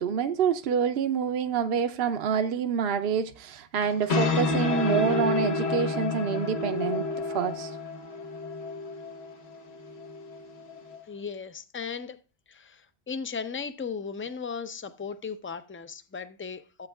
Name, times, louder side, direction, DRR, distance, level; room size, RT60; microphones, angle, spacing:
voice 1, 0.0-7.8, right 7 dB, 70° right, 0.8 m, -27 dB
sound 1, 3.8-11.0, left 3 dB, 75° left, 1.3 m, -30 dB
voice 2, 11.0-12.2 12.5-16.9, left 5 dB, 20° left, 0.3 m, -36 dB
13.5 x 8.0 x 2.3 m
omnidirectional pair, 1.1 m